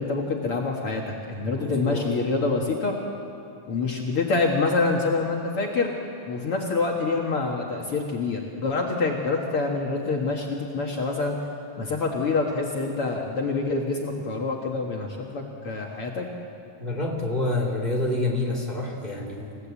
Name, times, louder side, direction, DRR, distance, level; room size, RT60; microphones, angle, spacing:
voice 1, 0.0-2.9 3.7-6.0 6.3-11.4 11.8-16.3, left 3 dB, 50° left, 0 dB, 2.4 m, -26 dB
voice 2, 1.6-2.1 16.8-19.6, left 2 dB, 15° right, 0 dB, 2.9 m, -27 dB
28.0 x 17.0 x 8.5 m, 2.6 s
omnidirectional pair, 3.5 m